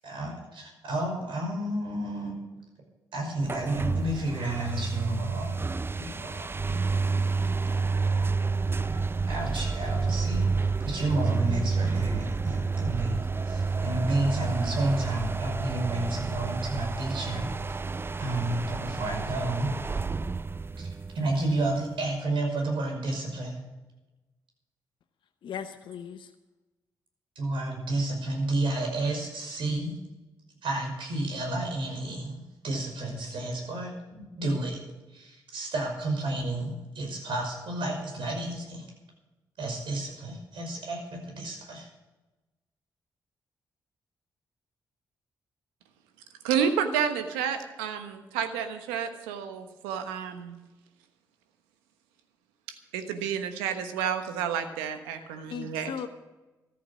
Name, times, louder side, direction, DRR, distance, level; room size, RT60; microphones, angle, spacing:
voice 1, 0.0-2.4 3.1-5.6 6.0-6.8 8.8-9.0 9.3-10.4 10.8-17.5 18.2-19.7 20.8-20.9 21.1-23.6 27.4-30.0 30.6-32.4 32.6-34.8 35.1-38.8 39.6-41.9, right 2 dB, 65° right, 2 dB, 5.5 m, -31 dB
sound 1, 3.4-21.9, right 4 dB, 25° right, 0.5 m, -30 dB
voice 2, 25.4-26.3 55.2-56.1, left 7 dB, 65° left, 7 dB, 0.9 m, -38 dB
voice 3, 46.4-50.5 52.7-55.9, right 8 dB, 90° right, 8 dB, 1.2 m, -30 dB
14.0 x 11.5 x 6.2 m, 1.1 s
hypercardioid pair, 40°, 9 cm